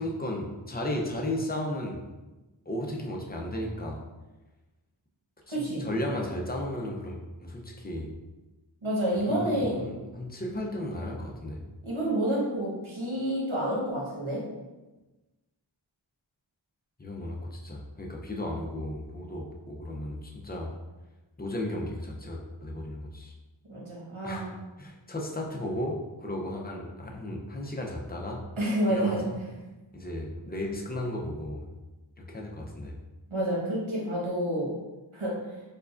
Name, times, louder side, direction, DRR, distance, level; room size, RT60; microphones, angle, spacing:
voice 1, 0.0-2.0 2.7-4.0 5.5-8.1 9.1-11.6 17.0-20.7 21.4-23.3 24.2-28.4 28.9-29.4 29.9-31.7 32.2-33.0, left 1 dB, 20° left, 0 dB, 0.6 m, -35 dB
voice 2, 5.5-5.8 8.8-9.8 11.8-14.4 23.7-24.5 28.6-29.2 33.3-34.7 35.1-35.3, right 1 dB, 80° right, -5 dB, 1.2 m, -29 dB
4.7 x 2.3 x 2.5 m, 1.1 s
wide cardioid pair, 50°, 48 cm